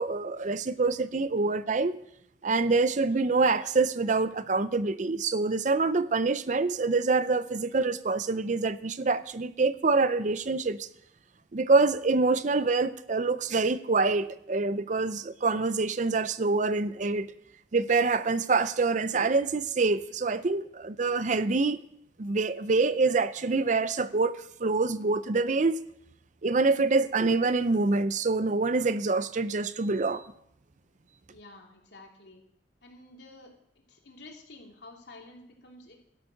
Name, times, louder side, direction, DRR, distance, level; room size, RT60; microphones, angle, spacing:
voice 1, 0.0-2.0 2.4-10.9 11.5-17.3 17.7-21.8 22.2-25.7 26.4-30.2, right 3 dB, 45° right, 14 dB, 0.6 m, -26 dB
voice 2, 31.3-32.4 32.8-33.5 33.9-35.9, left 2 dB, 75° left, 1 dB, 3.0 m, -50 dB
12.5 x 11.5 x 6.4 m, 0.74 s
head